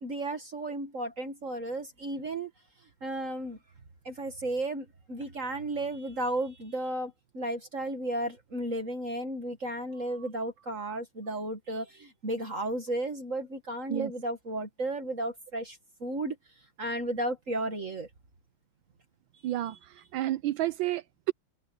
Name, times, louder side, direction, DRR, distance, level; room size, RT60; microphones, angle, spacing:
voice 1, 0.0-2.5 3.0-3.6 4.0-16.4 16.8-18.1 19.7-19.8, right 1 dB, 40° right, 2.0 m, -34 dB
voice 2, 19.4-21.3, right 14 dB, 80° right, 1.4 m, -31 dB
omnidirectional pair, 2.1 m